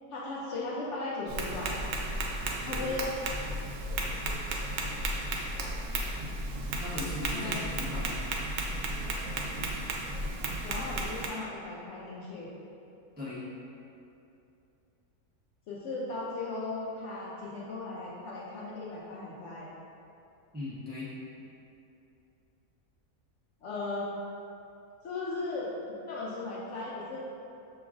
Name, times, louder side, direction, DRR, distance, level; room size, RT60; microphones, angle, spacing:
voice 1, 0.1-1.8 2.7-3.1 7.3-7.7 10.6-12.5 15.7-19.7 23.6-24.1 25.0-25.7 26.0-27.2, left 2 dB, 65° left, -5 dB, 0.8 m, -37 dB
Tap, 1.3-11.3, right 2 dB, 75° right, 1.0 m, -34 dB
voice 2, 6.8-8.2 13.2-13.4 20.5-21.1, left 2 dB, 10° right, -10 dB, 0.5 m, -38 dB
5.9 x 3.0 x 2.4 m, 2.8 s
omnidirectional pair, 1.5 m